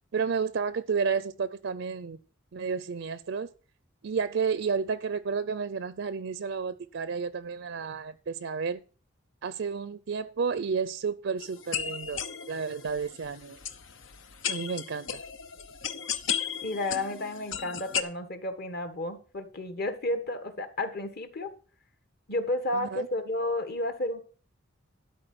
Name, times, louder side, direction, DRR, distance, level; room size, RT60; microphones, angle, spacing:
voice 1, 0.1-2.2 2.5-3.5 4.0-8.8 9.4-13.6 14.5-15.2 22.7-23.1, right 5 dB, 65° right, 0.5 m, -31 dB
sound 1, 11.4-18.0, left 8 dB, 80° left, 0.9 m, -35 dB
voice 2, 16.6-21.5 22.3-24.2, left 1 dB, 55° left, 1.7 m, -32 dB
12.0 x 4.7 x 7.8 m
head